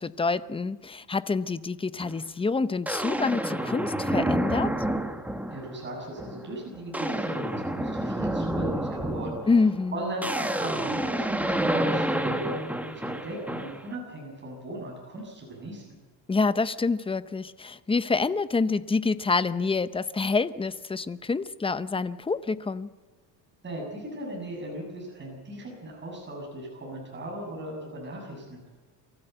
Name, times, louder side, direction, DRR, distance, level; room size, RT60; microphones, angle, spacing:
voice 1, 0.0-4.7 9.5-10.0 16.3-22.9, left 4 dB, 15° left, 14 dB, 0.7 m, -27 dB
sound 1, 2.0-2.1 2.9-5.7 6.2-6.5 6.7-13.9, right 1 dB, 5° right, 1.5 m, -29 dB
voice 2, 5.5-9.5 9.9-16.0 23.6-28.6, right 1 dB, 25° right, -1 dB, 7.1 m, -37 dB
24.0 x 15.0 x 7.9 m, 1.3 s
cardioid pair, 125°, 41 cm